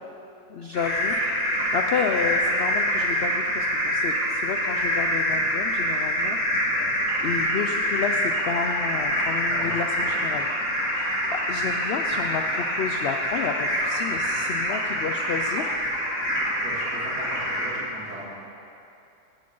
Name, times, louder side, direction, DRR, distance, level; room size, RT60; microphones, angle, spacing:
voice 1, 0.5-1.2 1.4-6.8 7.2-10.5 10.9-15.7, left 6 dB, 85° left, 5 dB, 0.5 m, -31 dB
sound 1, 0.7-17.7, equal, 50° left, 2.7 m, -25 dB
voice 2, 16.6-18.2, right 1 dB, 90° right, -8 dB, 3.3 m, -39 dB
17.0 x 7.6 x 3.8 m, 2.6 s
omnidirectional pair, 1.7 m